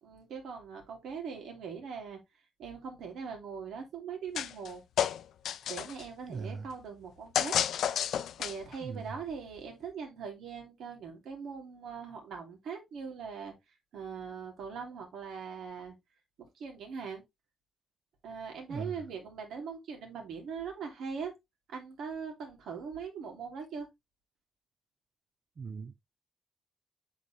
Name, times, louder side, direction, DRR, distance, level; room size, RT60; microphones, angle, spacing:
voice 1, 0.0-2.2 2.6-4.8 5.7-7.6 8.4-13.5 13.9-16.0 16.4-17.2 18.2-21.3 21.7-23.9, right 6 dB, 85° right, 2.5 m, -41 dB
sound 1, 4.3-4.7 5.0-6.0 7.3-8.8, left 10 dB, 85° left, 0.5 m, -30 dB
voice 2, 6.3-6.7 8.8-9.0 18.7-18.9 25.6-26.2, right 5 dB, 40° right, 0.4 m, -40 dB
8.3 x 3.9 x 3.2 m
wide cardioid pair, 165°, 0 cm